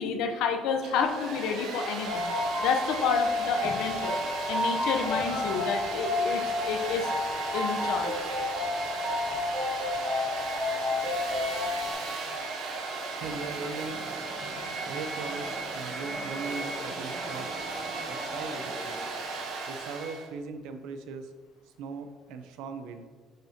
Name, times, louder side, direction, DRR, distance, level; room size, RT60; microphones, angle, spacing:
voice 1, 0.0-2.3 2.6-4.2 4.5-7.1 7.5-8.1 14.4-14.5, left 6 dB, 75° left, 5 dB, 0.7 m, -30 dB
Domestic sounds home sounds, 0.7-20.3, right 3 dB, 60° right, 1.0 m, -36 dB
sound 1, 2.0-11.9, left 2 dB, 15° right, 1.7 m, -31 dB
voice 2, 13.1-14.4 14.9-17.6 18.1-19.0 19.7-21.3 21.8-23.1, right 4 dB, 85° right, 8 dB, 0.6 m, -39 dB
sound 2, 13.2-19.6, equal, ahead, 0.5 m, -45 dB
6.5 x 5.8 x 2.8 m, 1.5 s
cardioid pair, 145°, 0 cm